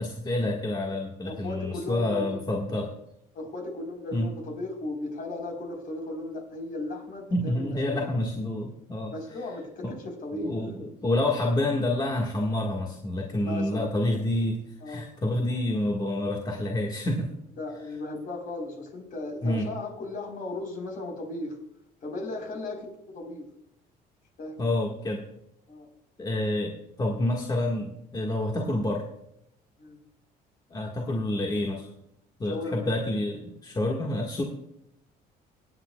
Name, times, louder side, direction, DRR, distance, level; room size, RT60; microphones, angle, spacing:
voice 1, 0.0-2.9 4.1-4.3 7.3-9.1 9.8-9.9 10.4-17.3 19.4-19.7 24.6-25.2 26.2-29.1 30.7-31.9 32.4-34.4, left 1 dB, 25° left, 0 dB, 1.7 m, -28 dB
voice 2, 1.2-2.4 3.3-8.1 9.1-10.6 13.4-13.9 14.8-15.1 17.6-21.6 22.0-23.5 24.4-24.6 25.7-25.9 26.6-26.7 29.8-30.0 32.4-32.8, left 2 dB, 55° left, 2 dB, 4.1 m, -36 dB
24.0 x 9.0 x 2.3 m, 0.76 s
cardioid pair, 110°, 17 cm